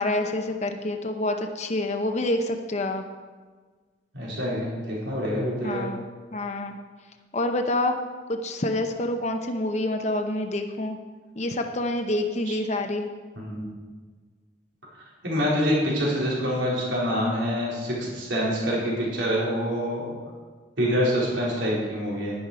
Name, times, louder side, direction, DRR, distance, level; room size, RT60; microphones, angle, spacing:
voice 1, 0.0-3.0 5.6-6.0 6.3-6.8 7.3-8.0 8.3-11.0 11.4-13.1, left 1 dB, 40° left, 5 dB, 0.7 m, -27 dB
voice 2, 4.1-5.9 13.4-13.7 15.2-20.1 20.8-22.4, equal, 90° right, -5 dB, 4.1 m, -26 dB
11.0 x 10.5 x 4.9 m, 1.5 s
head